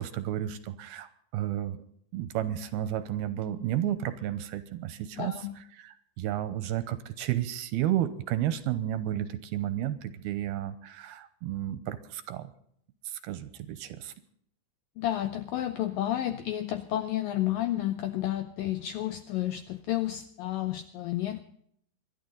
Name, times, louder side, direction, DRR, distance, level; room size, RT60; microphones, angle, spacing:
voice 1, 0.0-1.8 2.1-12.5 13.1-14.1, right 12 dB, 75° right, 12 dB, 2.6 m, -32 dB
voice 2, 5.2-5.6 15.0-21.4, left 13 dB, 80° left, 9 dB, 2.0 m, -31 dB
26.0 x 12.0 x 3.9 m, 0.66 s
omnidirectional pair, 4.9 m